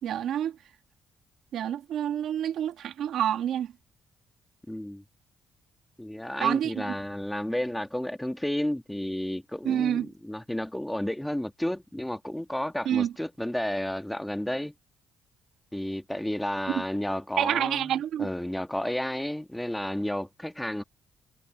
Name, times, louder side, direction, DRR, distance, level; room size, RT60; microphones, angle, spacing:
voice 1, 0.0-0.6 1.5-3.7 6.4-6.9 9.7-10.1 12.9-13.1 17.4-18.3, right 10 dB, 75° right, 1.8 m, -28 dB
voice 2, 4.7-5.0 6.0-14.7 15.7-20.8, left 1 dB, 5° left, 1.9 m, -32 dB
cardioid pair, 90°, 0 cm